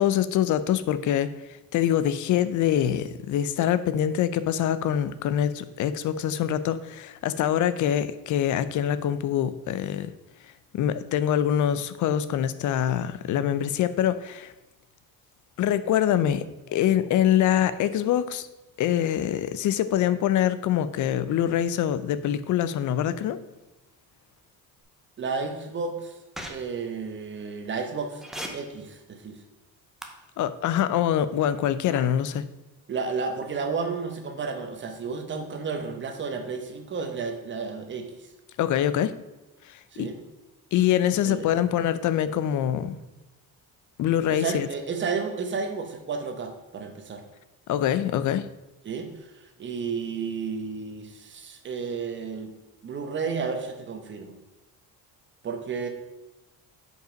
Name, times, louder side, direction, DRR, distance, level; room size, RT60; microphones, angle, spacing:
voice 1, 0.0-1.3 1.7-10.1 10.7-14.5 15.6-18.5 18.8-23.4 30.4-32.4 38.6-39.1 40.0-40.1 40.7-43.0 44.0-44.7 47.7-48.5, left 10 dB, 55° left, 14 dB, 0.5 m, -24 dB
voice 2, 25.2-26.2 26.5-28.2 28.5-29.4 32.9-38.3 39.9-40.2 41.2-41.5 44.3-47.2 48.8-52.5 52.8-54.4 55.4-55.9, right 5 dB, 30° right, 5 dB, 1.0 m, -32 dB
sound 1, 26.4-26.5 28.2-28.5 30.0-30.1 31.9-32.0, equal, ahead, 0.7 m, -35 dB
7.8 x 5.3 x 5.2 m, 1.0 s
cardioid pair, 175°, 37 cm